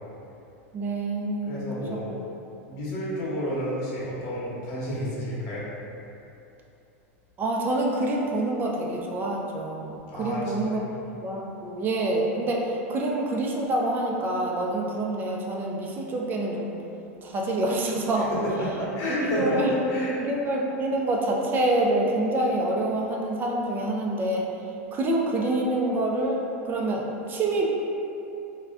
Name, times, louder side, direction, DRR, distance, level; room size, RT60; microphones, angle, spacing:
voice 1, 0.7-1.6 2.1-2.2 7.4-10.8 11.2-16.7 17.2-18.3 19.2-19.7 20.2-24.5 24.9-27.6, right 1 dB, 25° right, -1 dB, 0.4 m, -26 dB
voice 2, 1.5-2.1 2.7-5.6 10.1-10.9 18.4-20.2, equal, 50° left, -7 dB, 1.0 m, -30 dB
2.3 x 2.2 x 3.5 m, 2.8 s
hypercardioid pair, 120°, 8 cm